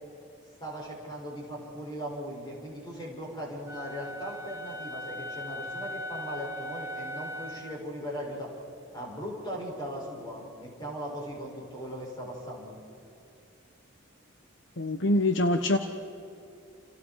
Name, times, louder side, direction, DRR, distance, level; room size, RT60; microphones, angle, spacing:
voice 1, 0.6-8.5 8.9-12.8, equal, 20° left, -3 dB, 6.9 m, -38 dB
Wind instrument woodwind instrument, 3.7-7.8, equal, 15° right, 2.3 m, -39 dB
voice 2, 14.8-15.8, left 1 dB, 60° left, 6 dB, 1.1 m, -24 dB
29.5 x 29.0 x 4.8 m, 2.5 s
head